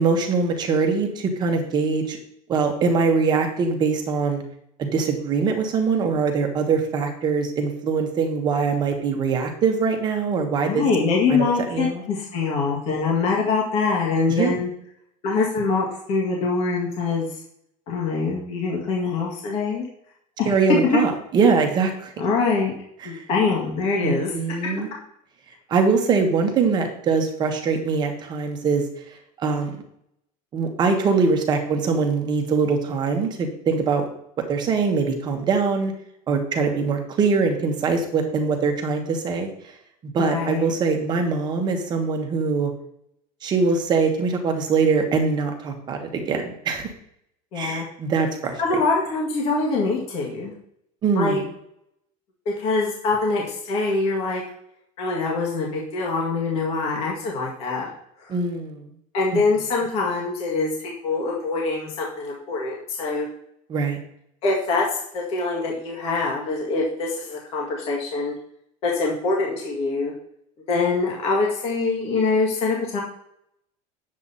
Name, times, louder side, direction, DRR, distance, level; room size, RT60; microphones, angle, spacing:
voice 1, 0.0-2.2 2.5-4.4 4.8-10.8 11.3-12.0 14.3-14.6 20.4-22.1 24.0-24.9 25.7-28.8 29.4-29.8 30.5-34.0 34.5-35.9 36.3-39.5 40.0-42.7 43.4-46.9 47.5-48.6 51.0-51.4 58.3-58.9 59.3-59.4 63.7-64.0, right 4 dB, 25° right, 4 dB, 1.4 m, -22 dB
voice 2, 10.6-14.7 15.2-17.4 17.9-19.9 20.4-20.5 22.2-22.7 23.0-24.8 40.2-40.7 47.5-47.9 48.6-50.5 51.2-51.4 52.5-54.4 55.0-57.9 58.2-58.3 59.1-63.3 64.4-68.3 68.8-70.1 70.7-73.0, left 4 dB, 35° left, -2 dB, 1.8 m, -24 dB
9.4 x 7.6 x 4.1 m, 0.73 s
cardioid pair, 175°, 17 cm